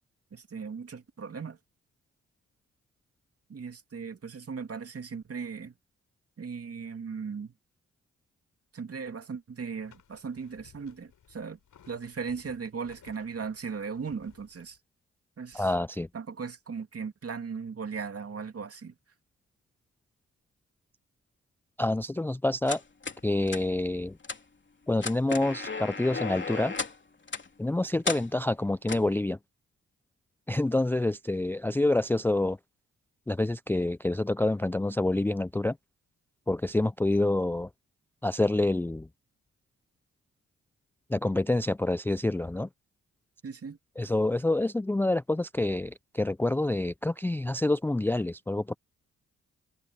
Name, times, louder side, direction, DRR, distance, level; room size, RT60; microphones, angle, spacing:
voice 1, 0.3-1.6 3.5-5.7 6.4-7.5 8.7-11.6 11.9-14.8 15.4-15.7 16.1-18.9 43.4-43.8, right 5 dB, 45° right, 2.7 m, -38 dB
sound 1, 9.8-14.8, left 8 dB, 70° left, 6.9 m, -59 dB
voice 2, 15.5-16.1 21.8-22.8 23.2-24.2 24.9-26.7 27.6-29.4 30.5-32.6 33.3-35.8 36.5-37.7 38.2-39.1 41.1-42.7 44.0-48.8, left 2 dB, 5° left, 0.4 m, -27 dB
sound 2, 22.7-23.2 23.5-23.6 24.2-24.4 24.9-27.0 27.3-27.5 28.0-28.2 28.9-29.1, left 4 dB, 35° left, 3.1 m, -34 dB
supercardioid pair, 55°, 32 cm